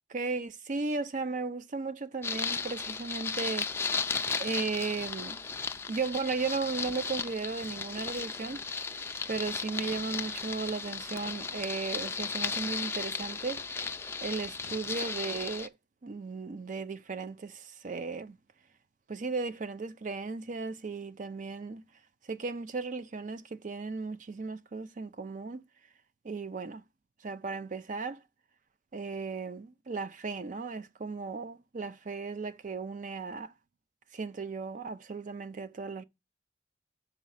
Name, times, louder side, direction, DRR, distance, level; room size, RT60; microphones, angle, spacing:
voice 1, 0.1-5.4 5.9-8.9 9.3-14.0 14.2-15.7 16.0-18.4 19.1-21.8 22.3-25.7 26.2-26.8 27.2-28.2 28.9-33.5 34.1-36.0, right 4 dB, 45° right, 0.5 m, -36 dB
sound 1, 2.2-15.7, left 5 dB, 15° left, 0.3 m, -35 dB
6.1 x 4.8 x 5.5 m
head